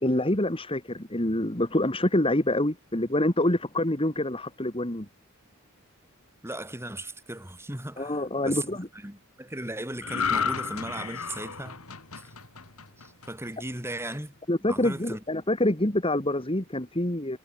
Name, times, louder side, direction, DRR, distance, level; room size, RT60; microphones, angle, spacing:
voice 1, 0.0-5.1 8.0-8.9 14.5-17.4, left 1 dB, 25° left, 2.8 m, -26 dB
voice 2, 6.4-11.8 13.0-14.3 14.6-15.2, right 1 dB, 10° right, 7.3 m, -37 dB
sound 1, 10.0-13.5 13.9-14.1, left 5 dB, 80° left, 4.1 m, -32 dB
head